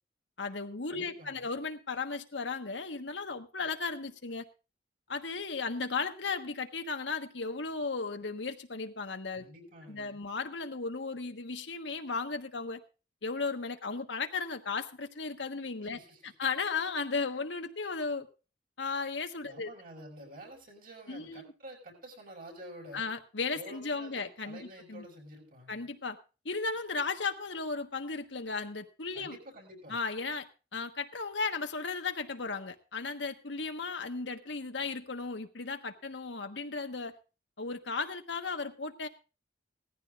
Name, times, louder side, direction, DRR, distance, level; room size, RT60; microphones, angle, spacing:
voice 1, 0.4-4.5 5.1-9.4 9.9-12.8 13.2-16.0 16.2-18.3 18.8-19.7 21.1-21.4 22.9-25.1 25.7-26.2 26.4-29.4 29.9-30.5 30.7-37.1 37.6-39.1, left 4 dB, 70° left, 6 dB, 1.3 m, -35 dB
voice 2, 0.9-1.5 9.3-10.2 15.9-16.3 19.4-23.0 23.5-25.9 29.1-30.0, right 1 dB, 50° right, 1 dB, 5.7 m, -49 dB
18.5 x 14.5 x 2.5 m, 0.32 s
head